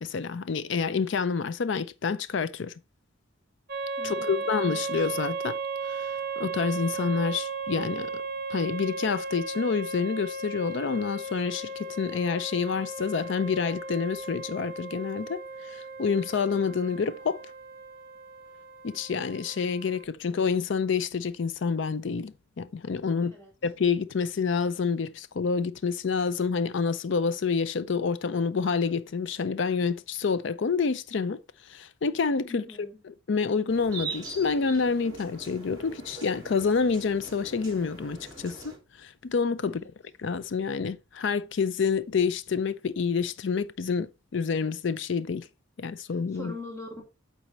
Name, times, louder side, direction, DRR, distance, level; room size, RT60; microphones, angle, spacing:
voice 1, 0.0-2.7 4.0-5.6 5.8-6.1 6.4-8.2 8.5-15.4 15.7-17.4 18.8-23.3 23.6-31.4 31.7-32.6 33.1-38.7 39.0-39.8 40.2-45.5 45.8-46.5, left 5 dB, 60° left, 0.4 m, -28 dB
sound 1, 3.7-20.0, right 3 dB, 45° right, 0.7 m, -36 dB
voice 2, 4.0-4.6 23.2-23.5 32.5-33.0 39.6-39.9 46.1-47.0, left 2 dB, 15° left, 2.6 m, -43 dB
sound 2, 33.7-38.8, right 3 dB, 20° right, 2.6 m, -42 dB
8.0 x 4.1 x 4.1 m
head